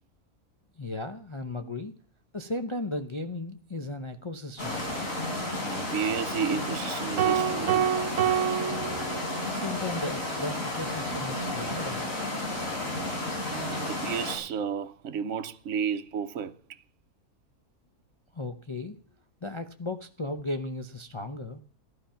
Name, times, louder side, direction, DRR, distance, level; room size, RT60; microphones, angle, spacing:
voice 1, 0.8-1.9 2.3-4.8 9.4-12.1 18.3-19.0 19.4-21.6, left 2 dB, 30° left, 0.6 m, -35 dB
sound 1, 4.6-14.3, left 1 dB, 65° left, 4.4 m, -32 dB
voice 2, 5.6-7.8 13.5-16.8, right 7 dB, 60° right, 1.1 m, -32 dB
sound 2, 7.2-9.7, right 10 dB, 80° right, 1.3 m, -27 dB
14.5 x 11.5 x 5.7 m
omnidirectional pair, 1.5 m